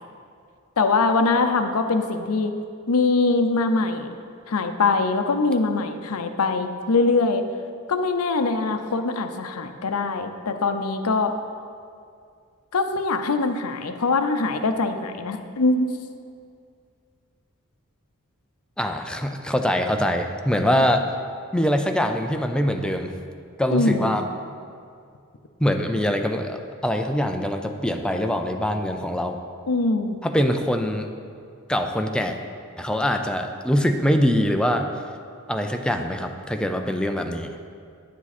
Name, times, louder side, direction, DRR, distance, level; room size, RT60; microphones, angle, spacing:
voice 1, 0.8-2.5 2.9-4.1 4.5-7.4 7.9-11.3 12.7-15.9 20.7-20.8 23.7-24.2 29.7-30.2, left 3 dB, 80° left, 8 dB, 0.6 m, -22 dB
voice 2, 18.8-21.0 21.5-23.1 23.6-24.2 25.6-29.4 30.2-31.1 31.7-32.4 32.8-34.9 35.5-37.5, equal, 5° left, 5 dB, 0.5 m, -23 dB
10.0 x 7.4 x 4.2 m, 2.3 s
head